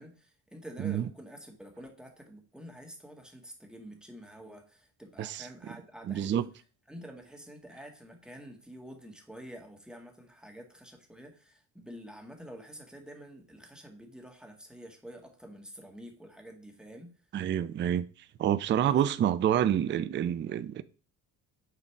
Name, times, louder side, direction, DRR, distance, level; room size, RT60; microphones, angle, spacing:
voice 1, 0.0-6.5 6.9-17.1 18.8-19.0, equal, ahead, 1.9 m, -48 dB
voice 2, 0.8-1.1 5.2-5.7 6.0-6.5 17.3-18.1 18.4-20.8, right 10 dB, 25° right, 0.4 m, -28 dB
7.1 x 4.0 x 4.6 m
hypercardioid pair, 55°, 44 cm